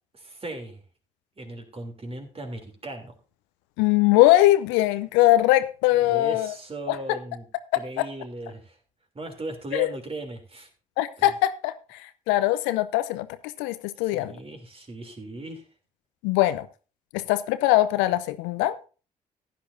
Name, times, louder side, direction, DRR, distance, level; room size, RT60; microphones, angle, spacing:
voice 1, 0.1-0.8 1.4-3.1 6.0-7.5 7.7-8.8 9.1-10.7 11.2-11.3 14.0-15.6, right 2 dB, 30° right, 3.2 m, -37 dB
voice 2, 3.8-6.5 6.9-7.2 8.0-8.1 9.7-9.9 11.0-11.7 12.3-13.3 13.6-14.3 16.2-16.7 17.1-18.8, left 16 dB, 70° left, 0.7 m, -21 dB
15.5 x 10.0 x 2.7 m
figure-of-eight pair, 45°, 20 cm